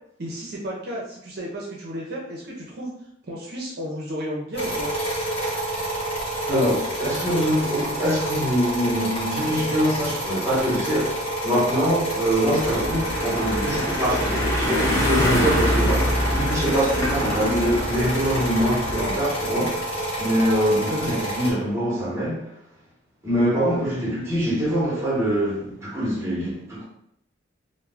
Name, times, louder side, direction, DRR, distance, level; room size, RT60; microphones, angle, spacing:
voice 1, 0.2-2.9 3.3-4.9 20.9-21.2, equal, 55° right, 0.5 m, -32 dB
sound 1, 4.5-21.5, right 1 dB, 30° left, 1.1 m, -28 dB
voice 2, 6.5-11.2 11.4-19.8 20.2-22.4 23.2-26.8, equal, 15° right, 0.8 m, -24 dB
sound 2, 12.6-19.2, left 1 dB, 15° left, 0.6 m, -25 dB
2.2 x 2.1 x 3.4 m
head